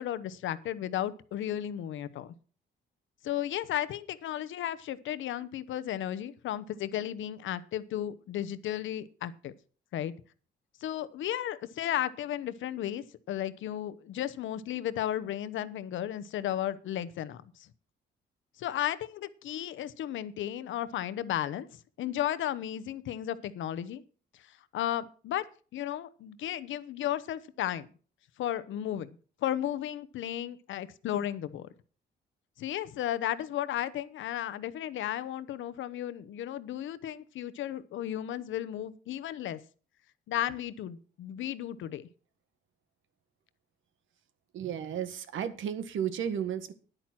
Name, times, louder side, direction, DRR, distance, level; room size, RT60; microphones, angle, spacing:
voice 1, 0.0-2.3 3.2-9.5 9.9-10.1 10.8-17.7 18.6-24.0 24.5-25.4 25.7-27.9 28.4-29.1 29.4-31.7 32.6-39.6 40.3-42.1, left 11 dB, 75° left, 15 dB, 1.0 m, -34 dB
voice 2, 44.5-46.7, right 9 dB, 75° right, 11 dB, 1.6 m, -33 dB
10.0 x 9.0 x 6.0 m, 0.40 s
cardioid pair, 90°, 20 cm